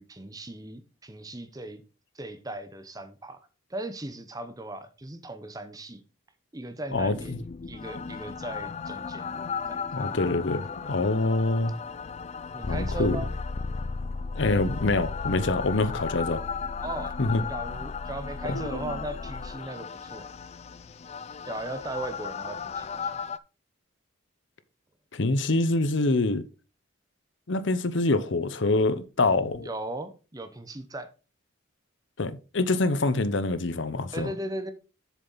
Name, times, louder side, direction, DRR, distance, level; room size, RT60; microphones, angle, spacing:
voice 1, 0.0-1.8 2.1-3.4 3.7-6.0 6.5-9.4 9.7-10.1 12.5-13.3 16.8-17.2 17.5-20.3 21.4-23.3 29.6-31.1 34.1-34.7, right 2 dB, 20° right, 0.8 m, -38 dB
voice 2, 6.9-7.4 9.4-9.5 9.9-11.7 12.7-13.2 14.4-16.4 17.2-17.4 18.5-18.9 25.1-26.4 27.5-29.7 32.2-34.3, left 2 dB, 65° left, 0.8 m, -25 dB
sound 1, 6.9-23.4, left 5 dB, 30° left, 0.3 m, -35 dB
7.4 x 6.8 x 3.9 m
head